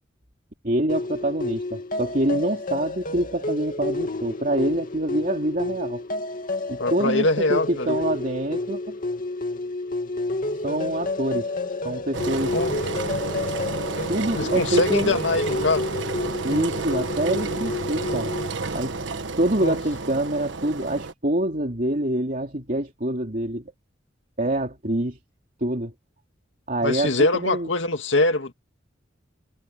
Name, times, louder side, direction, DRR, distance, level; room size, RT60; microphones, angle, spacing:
voice 1, 0.6-6.0 6.7-9.0 10.6-11.5 11.8-12.6 14.1-15.2 16.4-18.3 18.7-19.0 19.4-23.7 24.4-25.2 25.6-25.9 26.7-27.7, right 1 dB, 45° right, 3.1 m, -26 dB
sound 1, 0.9-18.5, left 2 dB, 45° left, 2.5 m, -30 dB
voice 2, 6.8-8.0 12.5-12.7 14.3-15.9 19.6-19.8 26.8-28.5, left 2 dB, 85° left, 2.2 m, -23 dB
Engine, 12.1-21.1, right 3 dB, 80° right, 1.3 m, -31 dB
head